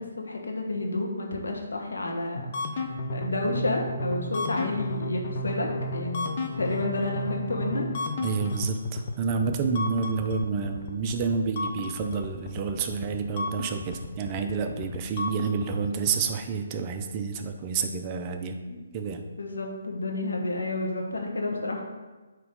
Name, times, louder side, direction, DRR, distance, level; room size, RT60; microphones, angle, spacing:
voice 1, 0.0-2.4 2.7-6.3 6.6-7.9 18.7-18.8 19.4-21.8, left 2 dB, 85° left, 1 dB, 1.2 m, -30 dB
sound 1, 2.4-16.2, left 1 dB, 45° left, 0.7 m, -33 dB
voice 2, 8.2-18.6 18.9-19.2, right 5 dB, 25° right, 5 dB, 0.5 m, -29 dB
8.9 x 3.0 x 3.8 m, 1.2 s
hypercardioid pair, 155°, 0 cm